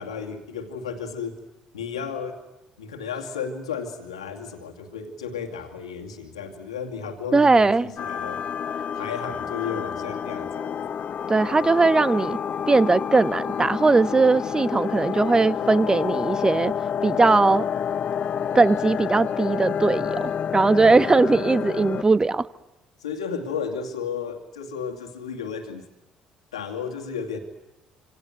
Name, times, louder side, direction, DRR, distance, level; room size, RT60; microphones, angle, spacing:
voice 1, 0.0-1.4 1.7-2.4 2.8-8.4 8.9-10.8 20.7-21.2 23.0-25.8 26.5-27.4, left 6 dB, 90° left, 3 dB, 2.4 m, -33 dB
voice 2, 7.3-7.9 11.3-12.4 12.7-16.7 17.0-17.7 18.5-22.5, right 3 dB, 25° right, 17 dB, 1.3 m, -19 dB
sound 1, 8.0-22.0, left 8 dB, 50° left, 0.9 m, -29 dB
27.5 x 27.0 x 7.9 m, 0.95 s
hypercardioid pair, 55°, 3 cm